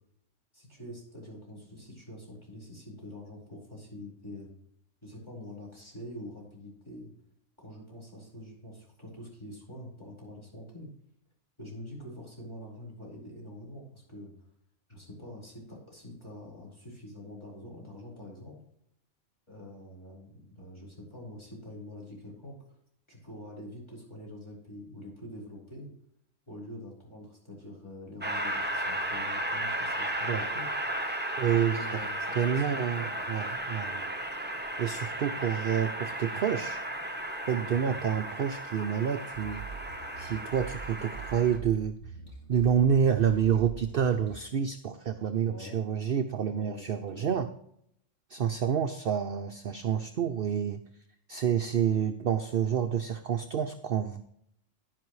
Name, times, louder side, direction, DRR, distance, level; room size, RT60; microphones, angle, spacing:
voice 1, 0.5-4.5 5.0-7.1 7.6-10.9 11.6-14.3 14.9-18.5 19.5-22.8 23.1-25.9 26.5-30.7 31.5-33.3 37.5-38.0 45.3-45.8 46.3-47.3, left 1 dB, 20° left, -4 dB, 4.7 m, -45 dB
Train, 28.2-41.6, right 1 dB, 10° right, 0.8 m, -35 dB
voice 2, 31.4-32.1 32.3-34.2 34.8-36.8 37.5-39.7 40.2-42.0 42.5-47.5 48.3-50.8 51.3-54.2, right 8 dB, 55° right, 8 dB, 0.7 m, -28 dB
sound 1, 39.3-44.4, right 6 dB, 65° left, 2.8 m, -44 dB
10.5 x 10.5 x 3.1 m, 0.72 s
omnidirectional pair, 1.3 m